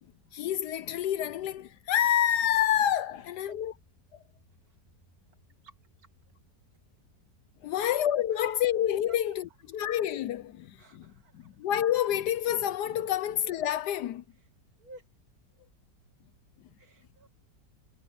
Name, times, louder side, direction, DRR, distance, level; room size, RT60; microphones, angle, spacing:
voice 1, 0.3-3.7 4.1-4.2 7.6-14.2 16.6-16.7, left 11 dB, 70° left, 1.1 m, -28 dB
sound 1, 2.0-15.6, equal, 5° left, 6.4 m, -70 dB
voice 2, 5.6-6.1 7.7-7.9 8.3-8.4 9.1-9.2 10.8-11.6 14.8-15.1 16.8-17.3, right 3 dB, 55° right, 2.6 m, -53 dB
omnidirectional pair, 2.0 m